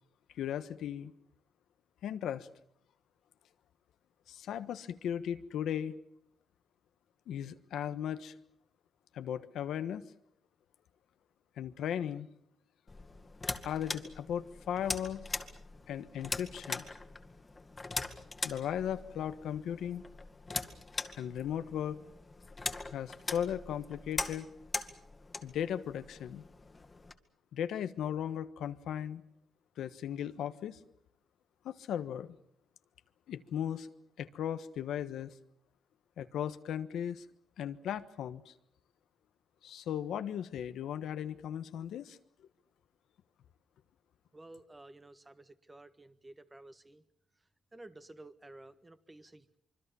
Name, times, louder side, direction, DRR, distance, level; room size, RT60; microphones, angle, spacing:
voice 1, 0.3-1.1 2.0-2.5 4.3-6.0 7.3-8.3 9.1-10.0 11.6-12.3 13.6-15.2 15.9-16.8 18.4-20.0 21.1-22.0 22.9-24.5 25.4-26.4 27.5-29.2 29.8-30.8 31.6-32.3 33.3-33.9 34.2-35.3 36.2-37.2 37.6-38.5 39.6-42.2, left 9 dB, 90° left, 10 dB, 1.3 m, -37 dB
sound 1, 12.9-27.1, left 3 dB, 25° left, 2.0 m, -41 dB
voice 2, 44.3-47.0 47.7-49.6, right 2 dB, 20° right, 11 dB, 1.6 m, -53 dB
25.5 x 24.0 x 7.1 m, 0.72 s
cardioid pair, 95°, 0 cm